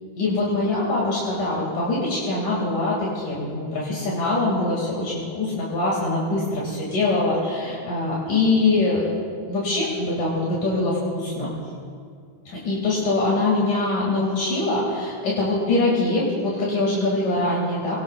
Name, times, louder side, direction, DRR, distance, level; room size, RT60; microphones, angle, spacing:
voice 1, 0.2-9.1 9.5-11.5 12.5-18.0, left 2 dB, 75° left, -5 dB, 4.1 m, -23 dB
24.0 x 19.0 x 2.5 m, 2.2 s
omnidirectional pair, 3.7 m